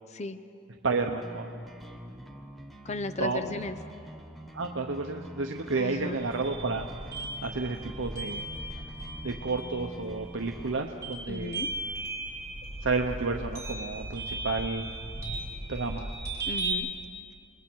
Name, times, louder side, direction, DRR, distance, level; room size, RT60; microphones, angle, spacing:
voice 1, 0.8-1.6 3.2-3.4 4.5-6.9 7.4-8.5 9.2-11.6 12.8-14.9 15.7-16.1, right 3 dB, 75° right, 3 dB, 0.9 m, -31 dB
sound 1, 1.2-10.8, equal, ahead, 1.1 m, -45 dB
voice 2, 2.8-3.8 5.8-6.2 11.3-11.7 16.4-16.9, left 2 dB, 35° left, 11 dB, 0.7 m, -35 dB
sound 2, 6.2-16.7, right 2 dB, 15° right, 3.1 m, -37 dB
28.5 x 21.0 x 4.6 m, 2.4 s
head